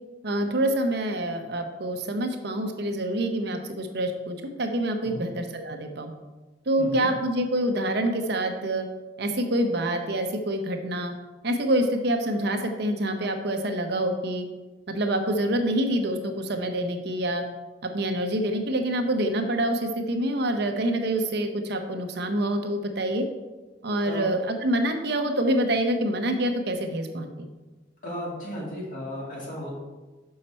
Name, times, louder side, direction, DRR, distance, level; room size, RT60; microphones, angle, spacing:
voice 1, 0.2-6.1 6.7-8.8 9.2-11.1 11.4-14.4 14.9-17.4 17.8-23.2 23.8-27.5, right 1 dB, 65° right, 5 dB, 0.9 m, -26 dB
voice 2, 6.8-7.1 24.0-24.2 28.0-29.7, left 1 dB, 50° left, -4 dB, 2.5 m, -35 dB
6.6 x 5.7 x 4.3 m, 1.2 s
head